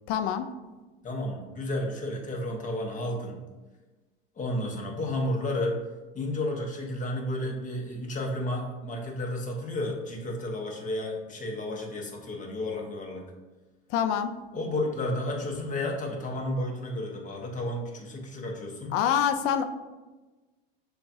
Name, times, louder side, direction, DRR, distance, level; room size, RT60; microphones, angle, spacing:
voice 1, 0.1-0.5 13.9-14.3 18.9-19.6, left 9 dB, 50° left, 10 dB, 0.4 m, -25 dB
voice 2, 1.0-3.4 4.4-5.8 6.1-13.2 14.5-18.9, left 1 dB, 25° left, 1 dB, 1.0 m, -32 dB
6.4 x 2.4 x 2.7 m, 1.2 s
hypercardioid pair, 95°, 31 cm